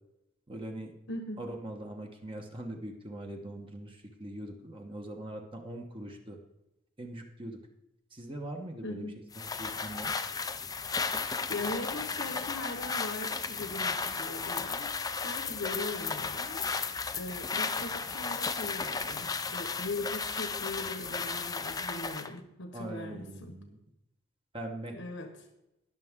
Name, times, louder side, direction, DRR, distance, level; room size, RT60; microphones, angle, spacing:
voice 1, 0.5-0.9 1.4-6.4 7.0-7.6 8.1-10.1 22.7-23.8 24.5-25.0, right 1 dB, 25° right, 2 dB, 1.2 m, -42 dB
voice 2, 1.1-1.4 8.8-9.2 11.3-14.9 15.2-23.6 24.9-25.3, left 2 dB, 70° left, 5 dB, 1.3 m, -40 dB
sound 1, 9.3-22.3, left 5 dB, 20° left, 0.5 m, -34 dB
20.5 x 6.9 x 3.7 m, 0.90 s
head